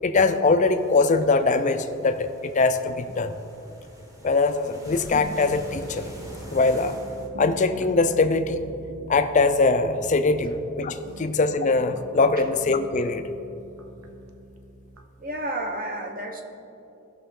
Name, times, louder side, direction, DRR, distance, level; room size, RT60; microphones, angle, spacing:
voice 1, 0.0-3.4 4.2-6.1 6.5-7.0 7.4-8.6 9.1-13.2, left 3 dB, 35° left, 9 dB, 0.4 m, -22 dB
sound 1, 0.6-7.3, equal, 15° right, 1.1 m, -45 dB
sound 2, 5.1-15.0, right 2 dB, 75° right, 0.7 m, -43 dB
voice 2, 15.2-16.4, right 1 dB, 40° right, 3 dB, 1.0 m, -31 dB
15.5 x 6.2 x 3.7 m, 2.8 s
head